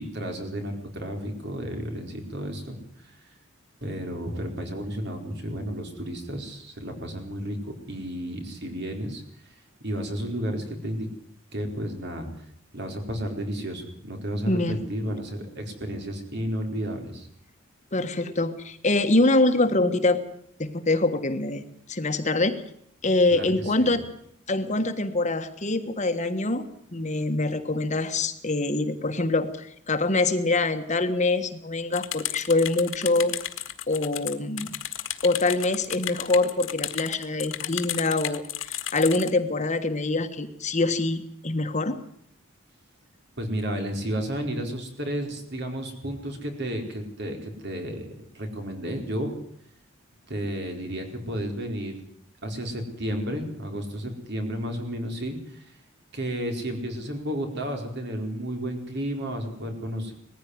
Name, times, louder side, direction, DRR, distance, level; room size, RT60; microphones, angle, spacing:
voice 1, 0.0-2.8 3.8-7.6 7.9-9.5 9.8-11.1 11.5-12.4 12.7-17.3 23.3-23.9 43.4-49.3 50.3-52.0 52.4-55.8 56.1-60.1, equal, 55° right, 4 dB, 4.4 m, -32 dB
voice 2, 14.5-14.8 17.9-20.2 20.6-22.6 23.0-24.1 24.5-26.7 26.9-33.4 33.9-34.7 35.2-42.0, left 2 dB, 35° left, 8 dB, 1.4 m, -24 dB
sound 1, 31.9-39.3, left 12 dB, 65° left, 1.7 m, -33 dB
19.5 x 15.0 x 9.6 m, 0.68 s
head